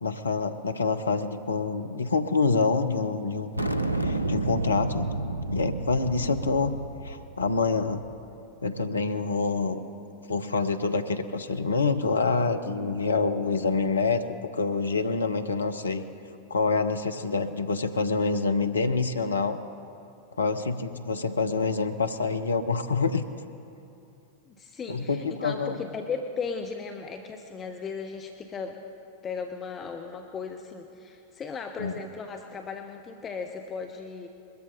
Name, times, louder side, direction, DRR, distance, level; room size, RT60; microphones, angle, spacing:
voice 1, 0.0-3.6 4.0-5.1 5.5-6.7 7.0-8.0 8.6-9.9 10.3-14.2 14.5-16.0 16.5-19.6 20.4-23.3 24.9-25.8 31.8-32.0, left 4 dB, 75° left, 9 dB, 0.7 m, -26 dB
sound 1, 3.6-8.2, right 2 dB, 85° right, 0.6 m, -31 dB
voice 2, 24.5-28.8 29.2-34.3, left 5 dB, 25° left, 4 dB, 0.8 m, -36 dB
21.5 x 13.5 x 4.0 m, 2.8 s
figure-of-eight pair, 90°, 0 cm